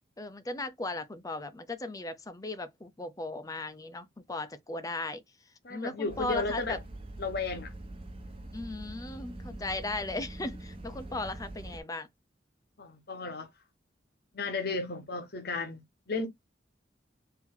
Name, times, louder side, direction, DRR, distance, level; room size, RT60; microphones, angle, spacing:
voice 1, 0.2-5.2 5.7-6.8 8.5-12.1, left 2 dB, 20° left, 0.6 m, -37 dB
voice 2, 5.6-6.8 7.2-7.7 12.8-13.5 14.3-16.3, left 3 dB, 60° left, 1.0 m, -34 dB
sound 1, 6.1-11.8, right 1 dB, 30° right, 1.1 m, -44 dB
4.5 x 2.8 x 3.8 m
head